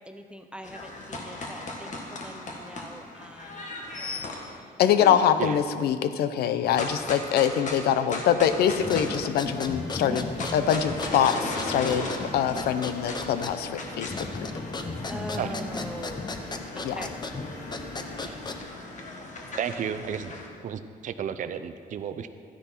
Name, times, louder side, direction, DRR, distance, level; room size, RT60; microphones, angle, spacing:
voice 1, 0.0-3.7 4.4-4.7 5.0-5.3 15.1-16.2 16.7-17.1 18.1-18.4, equal, 5° right, 6 dB, 0.6 m, -42 dB
sound 1, 0.6-4.6 6.6-9.7 9.9-20.5, left 2 dB, 50° left, 1.7 m, -38 dB
voice 2, 4.8-12.1 12.3-14.3 16.8-17.0, left 9 dB, 85° left, 11 dB, 0.7 m, -24 dB
sound 2, 8.5-18.6, left 3 dB, 65° left, 1.8 m, -43 dB
sound 3, 8.8-18.8, left 3 dB, 25° left, 0.8 m, -36 dB
voice 3, 19.6-20.3 20.6-22.3, right 8 dB, 55° right, 9 dB, 0.5 m, -32 dB
13.5 x 10.0 x 4.5 m, 2.2 s
cardioid pair, 95°, 16 cm